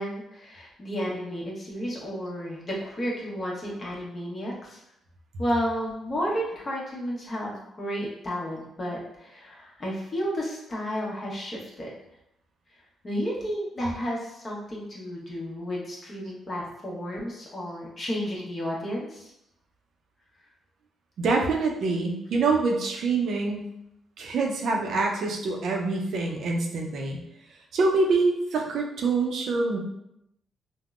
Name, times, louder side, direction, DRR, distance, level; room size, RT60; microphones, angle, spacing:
voice 1, 0.0-4.8 5.4-11.9 13.0-19.3 24.9-25.0, equal, 40° left, -3 dB, 1.0 m, -32 dB
voice 2, 21.2-23.7 24.2-27.2 27.7-29.8, right 3 dB, 70° right, 1 dB, 0.5 m, -25 dB
3.5 x 2.1 x 2.4 m, 0.80 s
cardioid pair, 85°, 0 cm